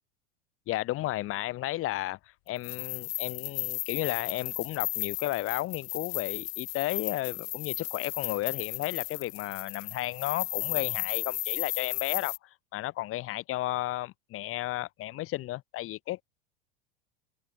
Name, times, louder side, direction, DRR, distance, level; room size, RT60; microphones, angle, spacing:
voice 1, 0.7-2.2 2.5-12.3 12.7-16.2, left 16 dB, 35° left, 1.1 m, -33 dB
sound 1, 2.6-12.4, left 23 dB, 50° left, 0.7 m, -35 dB
figure-of-eight pair, 85°, 39 cm